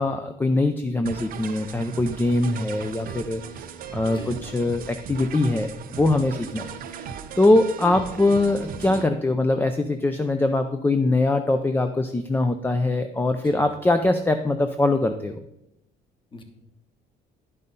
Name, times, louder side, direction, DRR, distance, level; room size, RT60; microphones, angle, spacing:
voice 1, 0.0-3.4 3.9-15.4, left 2 dB, 10° left, 7 dB, 0.4 m, -22 dB
sound 1, 1.0-9.1, right 7 dB, 60° right, 0.7 m, -37 dB
voice 2, 13.4-13.8 16.3-16.4, left 2 dB, 30° left, 5 dB, 1.4 m, -42 dB
10.5 x 5.6 x 4.0 m, 0.85 s
cardioid pair, 110°, 17 cm